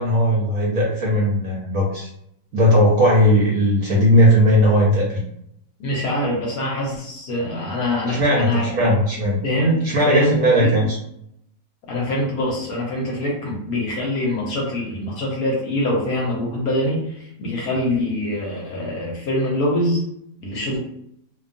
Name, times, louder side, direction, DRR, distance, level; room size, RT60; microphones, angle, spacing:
voice 1, 0.0-2.1 2.5-5.2 8.1-9.4 9.8-10.9, equal, 65° right, -3 dB, 0.9 m, -17 dB
voice 2, 5.8-9.0 9.4-10.8 11.9-20.0 20.4-20.8, left 1 dB, 65° left, -3 dB, 1.0 m, -24 dB
2.8 x 2.2 x 2.5 m, 0.76 s
omnidirectional pair, 1.9 m